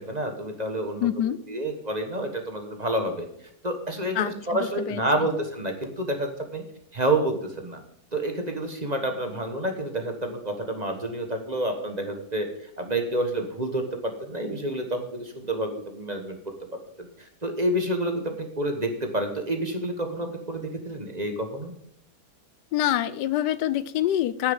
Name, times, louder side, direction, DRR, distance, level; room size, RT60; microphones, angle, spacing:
voice 1, 0.0-1.1 1.5-3.3 3.6-6.6 6.9-7.8 8.1-12.5 12.8-16.4 17.0-21.7, right 1 dB, 25° right, 4 dB, 1.3 m, -29 dB
voice 2, 1.0-1.4 4.1-5.0 22.7-24.5, left 12 dB, 85° left, 16 dB, 1.2 m, -26 dB
9.8 x 6.9 x 7.0 m, 0.69 s
omnidirectional pair, 1.8 m